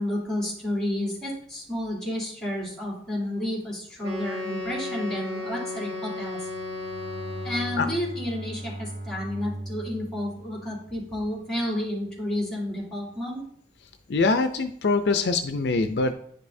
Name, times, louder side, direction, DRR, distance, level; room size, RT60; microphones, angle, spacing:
voice 1, 0.0-6.4 7.4-13.4, left 1 dB, 5° left, -6 dB, 2.7 m, -31 dB
Wind instrument woodwind instrument, 4.0-8.1, left 2 dB, 30° right, 1.8 m, -34 dB
Bowed string instrument, 6.4-11.6, right 1 dB, 70° right, 1.1 m, -39 dB
voice 2, 14.1-16.1, left 3 dB, 65° left, 8 dB, 0.5 m, -23 dB
9.8 x 5.3 x 2.7 m, 0.65 s
head